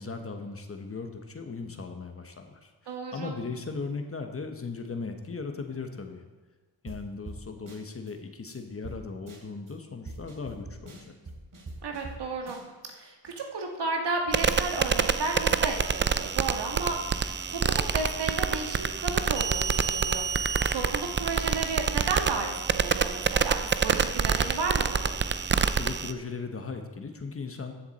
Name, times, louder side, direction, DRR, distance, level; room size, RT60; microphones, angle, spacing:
voice 1, 0.0-6.2 6.8-11.1 25.7-27.7, left 4 dB, 30° left, 6 dB, 1.1 m, -38 dB
voice 2, 2.9-3.3 11.8-12.6 13.0-17.6 17.9-20.3 20.7-23.6 23.8-25.1, right 3 dB, 70° right, 2 dB, 1.8 m, -33 dB
sound 1, 6.9-7.0 7.3-7.4 7.7-8.1 8.5-8.6 8.8-9.0 9.3-9.7 10.1-12.2 12.5-12.9, right 2 dB, 50° right, 2.9 m, -43 dB
sound 2, 14.3-26.1, right 6 dB, 25° right, 0.5 m, -27 dB
14.0 x 7.1 x 4.2 m, 1.3 s
cardioid pair, 85°, 42 cm